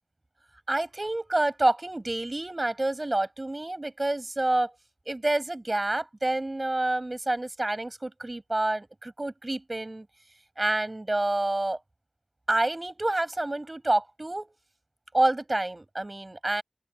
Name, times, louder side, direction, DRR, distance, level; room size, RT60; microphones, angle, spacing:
voice 1, 0.7-4.7 5.1-10.1 10.6-11.8 12.5-14.5 15.1-16.6, right 2 dB, 60° right, 7.1 m, -28 dB
open air
wide cardioid pair, 40°, 0 cm